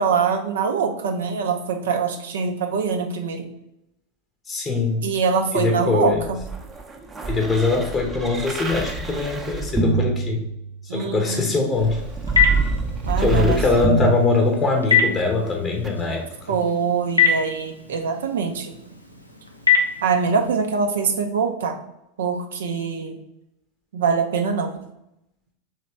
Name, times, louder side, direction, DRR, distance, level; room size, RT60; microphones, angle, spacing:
voice 1, 0.0-3.5 5.0-6.4 10.9-11.5 13.0-13.7 16.5-18.7 20.0-21.8 22.2-23.2 23.9-24.8, right 5 dB, 65° right, 5 dB, 0.4 m, -23 dB
voice 2, 4.5-5.0 5.5-6.2 7.3-10.4 10.8-12.0 13.2-16.6, left 3 dB, 20° left, 2 dB, 0.7 m, -22 dB
sound 1, 6.1-11.0 11.8-15.1 15.8-15.9, right 3 dB, 15° right, 0.6 m, -26 dB
Telephone, 11.7-20.5, left 6 dB, 90° left, 0.5 m, -25 dB
3.2 x 3.0 x 4.4 m, 0.84 s
figure-of-eight pair, 85°, 0 cm